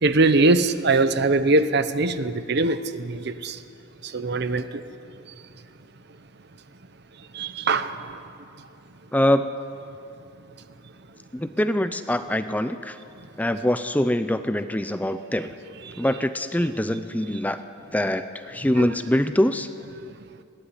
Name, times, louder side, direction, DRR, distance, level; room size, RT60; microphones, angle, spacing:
voice 1, 0.0-3.6 4.0-4.8 5.2-5.3 7.3-8.3 8.6-8.7 15.8-16.1 17.3-17.4 18.7-18.9, right 2 dB, 55° right, 12 dB, 0.8 m, -22 dB
voice 2, 9.1-9.6 11.3-13.0 13.4-15.5 16.0-17.6 17.9-19.7, left 1 dB, 10° left, 10 dB, 0.5 m, -24 dB
21.0 x 15.5 x 9.9 m, 2.6 s
head